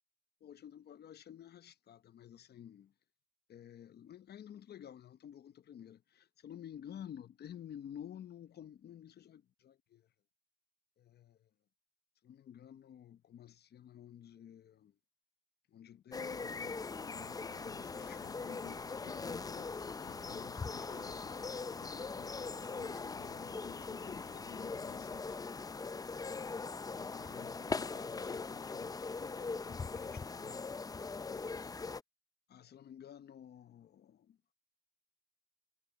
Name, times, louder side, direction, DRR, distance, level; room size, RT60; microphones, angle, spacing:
voice 1, 0.4-2.9 3.5-10.0 11.0-11.4 12.2-14.9 15.7-19.7 20.2-21.6 22.1-25.6 26.2-30.7 31.3-31.8 32.5-34.4, left 9 dB, 55° left, 0.8 m, -53 dB
sound 1, 16.1-32.0, left 4 dB, 20° left, 0.4 m, -41 dB
sound 2, 17.1-26.2 26.7-28.8, left 12 dB, 75° left, 1.7 m, -57 dB
cardioid pair, 90°, 20 cm